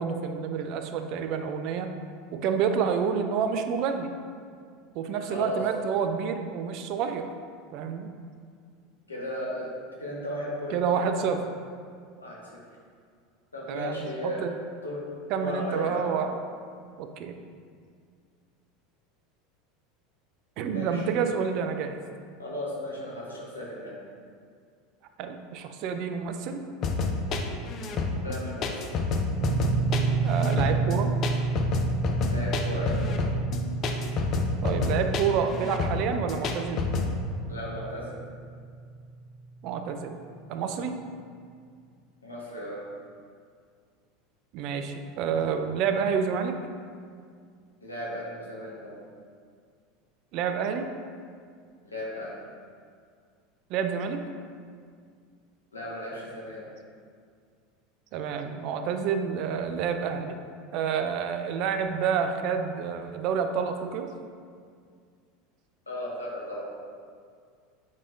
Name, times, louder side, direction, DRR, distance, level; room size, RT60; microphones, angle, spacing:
voice 1, 0.0-1.9 2.3-4.1 4.9-7.3 7.7-8.1 10.7-11.4 13.7-14.5 15.3-16.4 17.0-17.4 20.6-22.0 25.2-26.6 30.2-31.1 34.6-36.8 39.6-40.2 40.5-41.0 44.5-46.5 50.3-50.9 53.7-54.2 58.1-60.4 60.7-64.1, right 6 dB, 55° right, 7 dB, 0.5 m, -28 dB
voice 2, 5.3-5.6 9.1-9.7 10.0-11.3 12.2-12.4 13.5-14.4 14.8-15.0 15.3-16.1 20.7-21.0 22.4-23.9 28.2-28.8 32.3-33.0 37.5-38.1 42.2-42.8 47.8-49.0 51.8-52.3 55.7-56.6 65.9-66.6, equal, 90° left, -5 dB, 1.2 m, -35 dB
sound 1, 26.8-37.1, left 4 dB, 45° left, 0.6 m, -28 dB
sound 2, 29.3-39.5, right 5 dB, 80° right, 1.1 m, -31 dB
7.3 x 5.0 x 2.5 m, 2.1 s
figure-of-eight pair, 80°, 0 cm